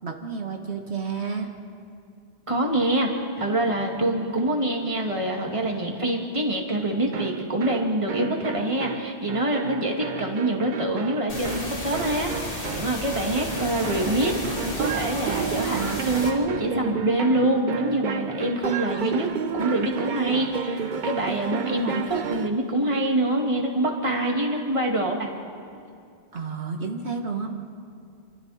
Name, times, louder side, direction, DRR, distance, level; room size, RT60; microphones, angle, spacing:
voice 1, 0.0-1.5 26.3-27.5, right 5 dB, 75° right, 2 dB, 1.9 m, -31 dB
voice 2, 2.5-19.3 19.5-25.3, right 1 dB, 30° right, 0 dB, 2.4 m, -25 dB
sound 1, 7.1-22.6, right 6 dB, 50° right, 0.8 m, -32 dB
sound 2, 11.3-16.3, left 1 dB, 55° left, 3.1 m, -33 dB
28.5 x 27.0 x 4.3 m, 2.4 s
omnidirectional pair, 1.1 m